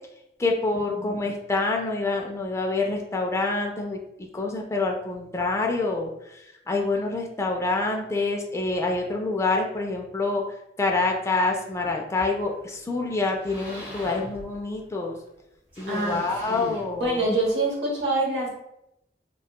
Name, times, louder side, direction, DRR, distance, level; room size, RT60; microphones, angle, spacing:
voice 1, 0.4-10.4 10.8-15.2 15.8-17.3, left 3 dB, 15° left, 0 dB, 0.3 m, -27 dB
sound 1, 12.1-12.8 13.2-15.0 15.7-17.5, left 1 dB, 10° right, 0.8 m, -43 dB
voice 2, 15.9-16.2 16.5-16.7 17.0-18.6, right 2 dB, 85° right, -2 dB, 0.9 m, -26 dB
2.7 x 2.2 x 2.2 m, 0.84 s
head